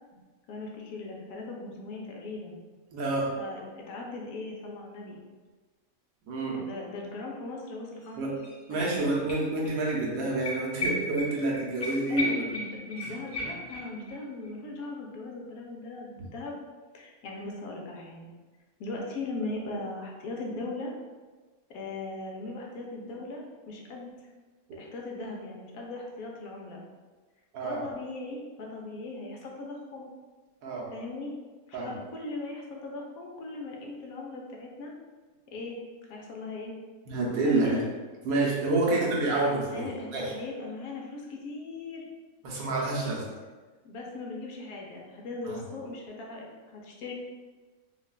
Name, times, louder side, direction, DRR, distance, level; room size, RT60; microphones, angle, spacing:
voice 1, 0.5-2.6 3.4-5.2 6.5-8.2 8.7-9.0 12.1-16.5 16.9-18.3 18.8-20.9 21.7-24.1 24.8-26.8 27.6-30.1 30.9-31.3 31.7-34.9 35.5-35.8 36.1-36.8 37.6-37.9 38.9-39.2 39.7-42.1 43.0-43.1 43.8-47.1, left 2 dB, 80° left, -1 dB, 1.0 m, -39 dB
voice 2, 2.9-3.3 6.3-6.6 8.2-8.3 8.7-12.5 16.2-16.3 24.7-24.8 27.5-27.8 30.6-30.9 31.7-31.9 37.1-37.8 38.2-40.3 42.4-43.2 45.4-45.6, right 2 dB, 80° right, -4 dB, 1.2 m, -28 dB
sound 1, 8.0-8.1 8.4-9.7 10.0-10.1 10.5-14.1 14.4-14.5, left 1 dB, 30° left, 0.8 m, -35 dB
3.9 x 2.1 x 2.2 m, 1.3 s
omnidirectional pair, 1.5 m